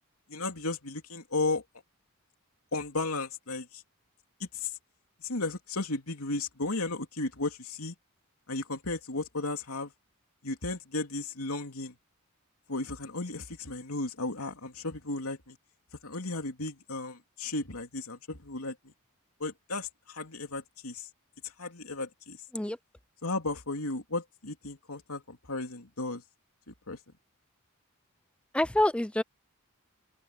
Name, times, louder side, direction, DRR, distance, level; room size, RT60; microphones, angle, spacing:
voice 1, 0.3-1.6 2.7-3.8 4.4-4.7 5.2-7.9 8.5-9.9 10.4-11.9 12.7-15.6 16.0-18.8 19.4-21.1 21.6-22.4 23.2-26.2 26.7-27.0, left 2 dB, 80° left, 3.2 m, -34 dB
voice 2, 28.5-29.2, left 1 dB, 5° left, 0.4 m, -26 dB
open air
head